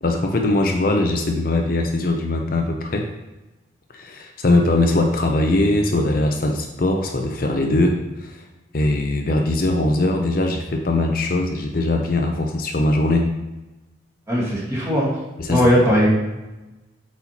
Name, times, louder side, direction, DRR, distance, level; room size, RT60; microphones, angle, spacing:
voice 1, 0.0-3.1 3.9-8.4 8.7-13.3 15.4-15.6, left 2 dB, 45° left, 2 dB, 0.6 m, -21 dB
voice 2, 14.3-15.1 15.5-16.1, equal, 15° right, -6 dB, 1.6 m, -18 dB
8.0 x 4.3 x 2.9 m, 1.1 s
head